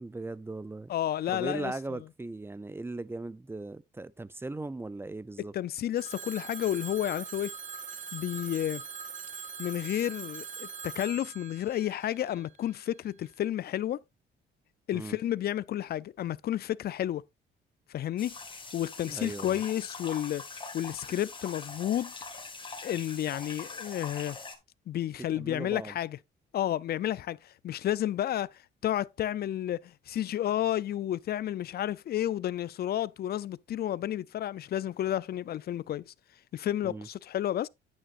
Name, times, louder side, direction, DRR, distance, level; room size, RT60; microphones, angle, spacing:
voice 1, 0.0-0.9 1.3-5.5 14.9-15.2 19.1-19.6 25.3-26.0 36.8-37.1, right 2 dB, 10° right, 0.4 m, -38 dB
voice 2, 0.9-1.7 5.5-7.5 8.1-8.8 9.6-14.0 14.9-17.2 17.9-18.3 18.7-20.4 20.7-22.1 22.8-24.4 24.9-26.2 26.5-36.1 36.5-37.7, left 12 dB, 50° left, 0.4 m, -31 dB
Telephone, 6.0-12.8, right 6 dB, 40° right, 1.7 m, -42 dB
sound 1, 18.2-24.6, left 4 dB, 25° left, 1.8 m, -43 dB
9.5 x 8.8 x 2.5 m
cardioid pair, 90°, 20 cm